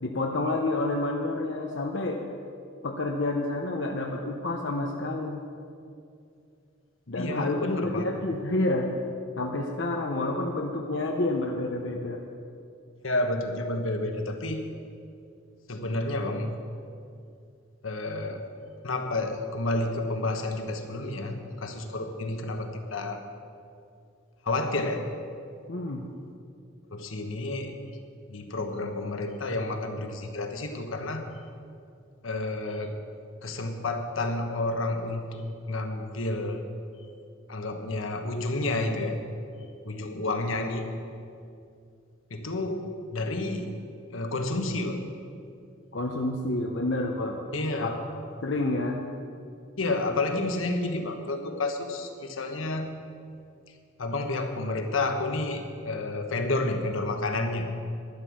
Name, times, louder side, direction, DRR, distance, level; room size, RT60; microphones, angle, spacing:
voice 1, 0.0-2.2 2.8-5.4 7.1-8.9 9.4-12.2 25.7-26.1 45.9-47.4 47.7-48.0 48.4-49.0, left 2 dB, 65° left, 1 dB, 0.8 m, -29 dB
voice 2, 7.1-8.0 13.0-14.7 15.7-16.5 17.8-18.5 18.8-23.2 24.4-25.0 26.9-27.7 28.3-31.3 32.2-33.0 33.4-36.6 37.5-39.2 39.8-40.9 42.3-43.7 44.1-45.0 47.5-47.9 49.8-52.9 54.0-57.7, left 2 dB, 80° left, 5 dB, 1.3 m, -30 dB
12.0 x 10.5 x 6.3 m, 2.5 s
head